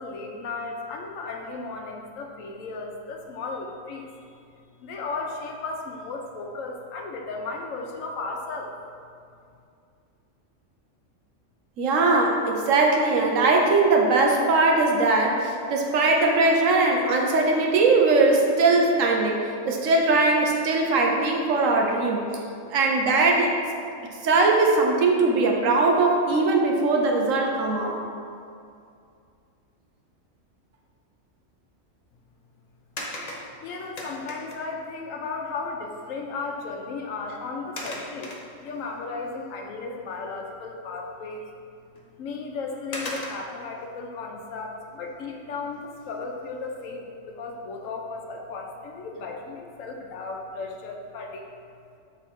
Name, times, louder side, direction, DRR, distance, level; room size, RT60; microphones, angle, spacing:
voice 1, 0.0-4.1 4.8-8.7 33.6-38.3 38.6-41.5 42.2-51.5, left 3 dB, 80° left, 2 dB, 1.1 m, -35 dB
voice 2, 11.8-19.4 19.7-22.2 22.7-23.6 24.2-28.0, right 3 dB, 75° right, 1 dB, 1.1 m, -20 dB
sound 1, 33.0-34.8 36.0-36.1 36.5-36.7 37.8-38.9 39.4-39.6 41.9-42.0 42.9-43.7 45.9-46.3 46.8-46.9, left 1 dB, 40° left, 0.6 m, -37 dB
6.8 x 3.4 x 4.4 m, 2.4 s
omnidirectional pair, 1.4 m